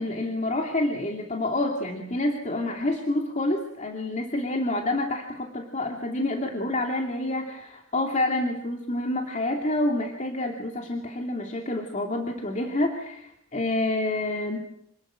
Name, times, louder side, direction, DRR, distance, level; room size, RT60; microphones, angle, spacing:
voice 1, 0.0-14.6, left 1 dB, 35° left, 2 dB, 2.7 m, -28 dB
27.0 x 20.5 x 7.7 m, 0.78 s
head